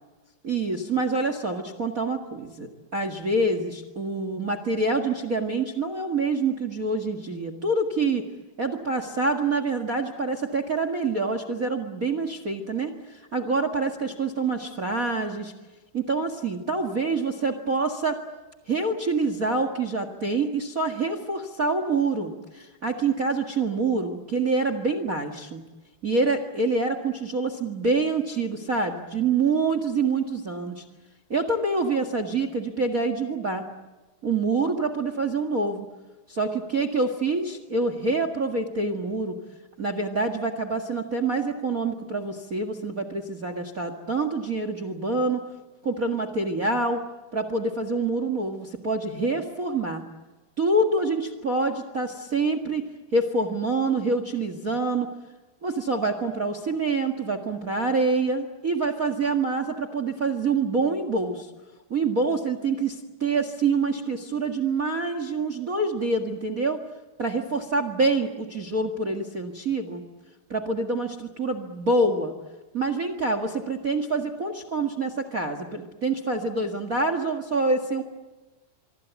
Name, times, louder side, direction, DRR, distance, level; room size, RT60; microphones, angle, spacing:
voice 1, 0.4-8.2 8.6-15.5 15.9-18.2 18.7-25.6 26.0-30.8 31.3-33.6 34.2-35.8 36.3-39.3 39.8-45.4 45.8-47.0 47.3-50.0 50.6-55.1 55.6-61.5 61.9-66.8 67.2-70.0 70.5-72.3 72.7-78.0, right 3 dB, 60° right, 10 dB, 0.9 m, -26 dB
25.5 x 25.0 x 8.2 m, 1.2 s
omnidirectional pair, 4.7 m